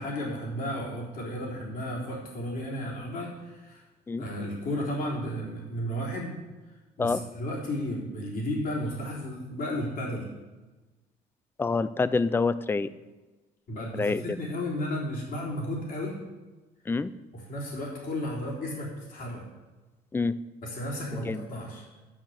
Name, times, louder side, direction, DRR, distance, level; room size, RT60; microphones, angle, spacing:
voice 1, 0.0-3.8 4.2-6.4 7.0-10.3 13.7-16.2 17.3-19.4 20.6-21.8, equal, 55° left, -3 dB, 3.9 m, -33 dB
voice 2, 11.6-12.9 14.0-14.4 16.9-17.1 20.1-20.3 21.2-21.4, left 4 dB, 15° left, 16 dB, 0.4 m, -26 dB
10.0 x 6.2 x 7.5 m, 1.2 s
cardioid pair, 110°, 17 cm